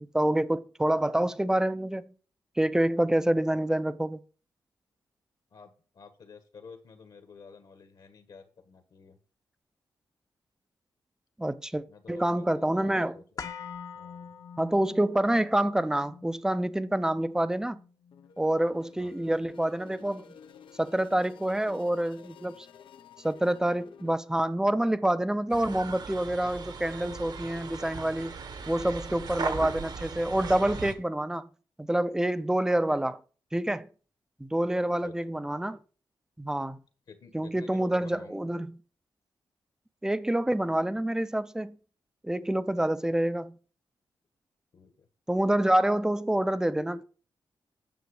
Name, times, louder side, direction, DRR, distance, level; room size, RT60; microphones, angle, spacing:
voice 1, 0.0-2.1 2.6-4.2 11.4-13.2 14.6-17.8 18.4-20.3 20.8-22.7 23.2-28.3 28.7-31.5 31.8-33.2 33.5-33.9 34.4-35.8 36.4-36.8 37.3-38.7 40.0-41.8 42.2-43.6 45.3-47.0, right 1 dB, 5° right, 0.5 m, -27 dB
voice 2, 5.5-9.2 11.9-13.2 13.9-14.3 19.0-19.2 34.8-35.4 37.1-38.4 44.7-45.1, left 5 dB, 60° left, 1.4 m, -51 dB
sound 1, 13.4-21.5 21.8-21.9, left 6 dB, 45° left, 0.9 m, -47 dB
sound 2, 18.1-24.1, left 7 dB, 85° left, 0.8 m, -52 dB
sound 3, 25.5-30.9, right 5 dB, 55° right, 1.2 m, -38 dB
9.4 x 7.1 x 4.8 m
wide cardioid pair, 140°, 8 cm